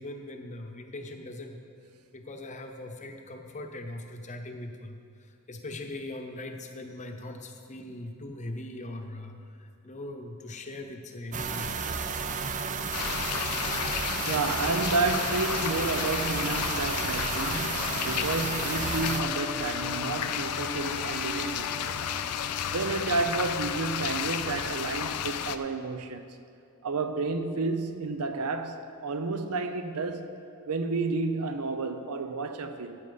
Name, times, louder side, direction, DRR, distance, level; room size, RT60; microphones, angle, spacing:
voice 1, 0.0-1.6 2.1-5.0 5.5-12.1, left 1 dB, 35° left, 0.8 m, -40 dB
sound 1, 11.3-19.2, right 5 dB, 35° right, 0.5 m, -32 dB
sound 2, 12.9-25.6, left 9 dB, 85° left, 0.5 m, -32 dB
voice 2, 14.3-22.0 22.7-26.2 26.8-30.3 30.7-33.0, right 3 dB, 85° right, 0.7 m, -31 dB
Wind instrument woodwind instrument, 18.7-23.4, left 1 dB, ahead, 1.1 m, -41 dB
14.0 x 8.3 x 4.0 m
head